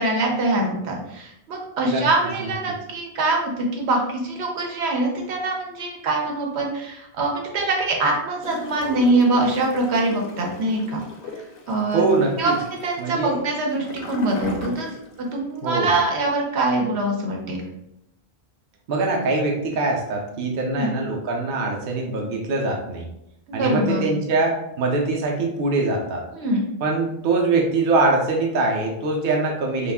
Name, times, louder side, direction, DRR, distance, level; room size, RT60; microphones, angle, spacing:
voice 1, 0.0-11.0 11.7-12.0 12.4-12.5 12.8-14.9 15.2-17.6 20.7-20.9 23.5-24.0 26.3-26.6, right 2 dB, 80° right, 0 dB, 1.0 m, -23 dB
Gurgling / Toilet flush, 8.4-15.3 15.6-15.7, left 2 dB, 70° left, 0.7 m, -38 dB
voice 2, 11.9-12.6 13.0-13.4 15.6-15.9 18.9-23.1 23.5-26.2 26.8-29.9, right 3 dB, 65° right, 0 dB, 0.7 m, -23 dB
2.4 x 2.3 x 3.4 m, 0.81 s
omnidirectional pair, 1.1 m